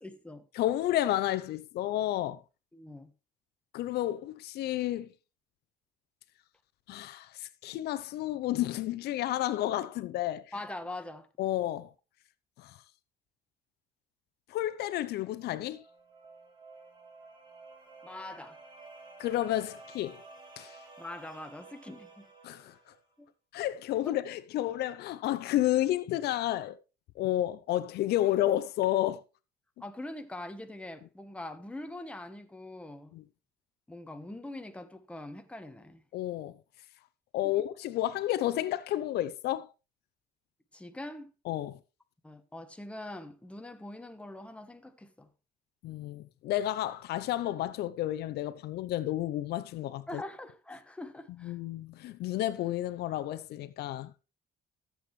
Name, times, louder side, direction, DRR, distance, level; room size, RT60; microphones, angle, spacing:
voice 1, 0.0-0.4 2.7-3.1 10.5-11.3 18.0-18.6 21.0-22.3 23.2-23.3 29.8-33.1 33.9-36.0 37.4-37.6 40.7-41.3 42.2-45.3 50.1-51.6, left 1 dB, 5° left, 1.1 m, -43 dB
voice 2, 0.5-2.4 3.7-5.1 6.9-10.4 11.4-11.9 12.6-12.8 14.5-15.8 19.2-20.2 20.6-20.8 22.4-22.7 23.5-26.8 27.2-29.2 33.1-33.2 36.1-36.6 37.3-39.7 41.5-41.8 45.8-50.2 51.4-54.2, left 14 dB, 75° left, 0.6 m, -31 dB
sound 1, 15.2-23.0, right 3 dB, 25° right, 3.0 m, -53 dB
14.0 x 7.8 x 3.2 m
cardioid pair, 110°, 17 cm